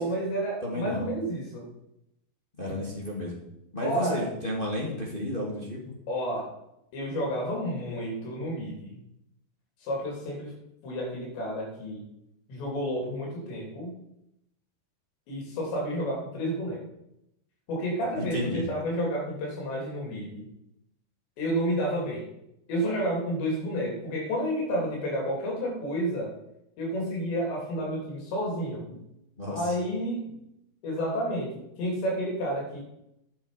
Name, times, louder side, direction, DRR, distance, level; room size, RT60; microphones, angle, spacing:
voice 1, 0.0-1.7 3.8-4.3 6.1-6.5 6.9-9.0 9.8-10.5 10.8-12.0 12.5-13.9 15.3-16.8 17.7-20.5 21.4-22.3 22.7-26.3 26.8-29.0 29.5-30.4 30.8-32.8, equal, 80° left, -1 dB, 5.7 m, -30 dB
voice 2, 0.6-1.1 2.6-3.3 3.7-5.9 18.2-18.7 29.4-29.7, left 1 dB, 20° left, -2 dB, 1.4 m, -32 dB
11.5 x 9.5 x 5.1 m, 0.82 s
omnidirectional pair, 5.0 m